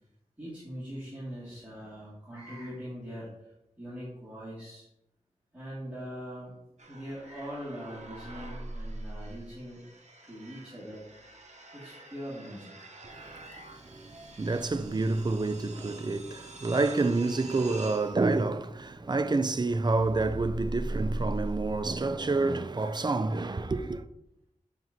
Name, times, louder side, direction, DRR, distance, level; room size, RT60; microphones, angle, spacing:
voice 1, 0.4-4.9 5.5-11.1 11.7-12.9, equal, 10° right, 2.1 m, -42 dB
sound 1, 6.8-22.3, right 1 dB, 55° right, 0.7 m, -42 dB
voice 2, 14.4-24.0, right 3 dB, 35° right, 0.4 m, -28 dB
5.9 x 5.9 x 2.7 m
wide cardioid pair, 80°, 13 cm